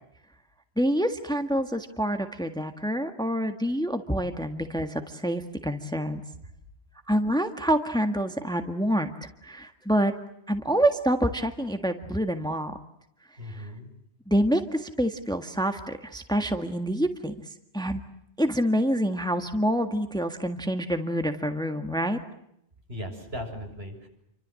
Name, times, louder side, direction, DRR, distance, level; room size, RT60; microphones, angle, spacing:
voice 1, 0.8-6.2 7.1-10.1 10.5-12.7 13.5-13.7 14.3-17.3 17.7-18.0 18.4-22.2, equal, 5° left, 7 dB, 1.7 m, -27 dB
voice 2, 13.4-13.9 22.9-24.1, equal, 65° right, 3 dB, 7.1 m, -37 dB
29.5 x 25.5 x 7.7 m, 0.77 s
omnidirectional pair, 1.1 m